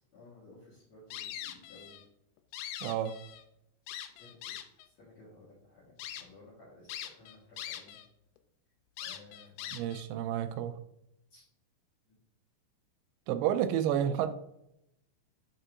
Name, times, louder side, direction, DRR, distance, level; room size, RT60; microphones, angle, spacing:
voice 1, 0.1-2.0 4.2-4.4 4.8-8.0 9.0-9.7 11.3-11.4, left 2 dB, 55° left, -6 dB, 2.1 m, -56 dB
sound 1, 1.1-2.0 2.4-3.4 3.9-4.9 5.4-5.5 6.0-6.2 6.9-8.1 8.4-8.5 9.0-10.1, left 11 dB, 90° left, 2.8 m, -42 dB
voice 2, 2.8-3.2 9.7-10.8 13.3-14.3, right 10 dB, 90° right, 10 dB, 2.8 m, -30 dB
7.1 x 5.3 x 2.5 m, 0.79 s
omnidirectional pair, 5.0 m